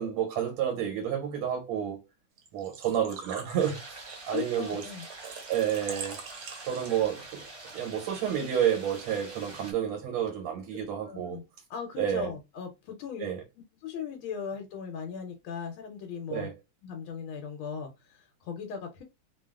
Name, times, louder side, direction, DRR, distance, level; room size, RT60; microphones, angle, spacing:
voice 1, 0.0-2.0 2.5-4.0 4.3-4.9 5.5-6.2 6.7-7.5 7.7-11.4 12.0-12.3 13.2-13.4 16.3-16.5, right 9 dB, 85° right, 1.5 m, -30 dB
Engine / Trickle dribble / Fill (with liquid), 2.4-7.2, right 5 dB, 65° right, 1.0 m, -44 dB
sound 1, 3.6-9.7, right 2 dB, 40° right, 0.8 m, -46 dB
voice 2, 4.3-5.1 11.0-11.4 11.7-13.3 13.8-16.5 16.8-19.0, left 6 dB, 80° left, 1.5 m, -38 dB
3.3 x 2.2 x 2.3 m
omnidirectional pair, 2.3 m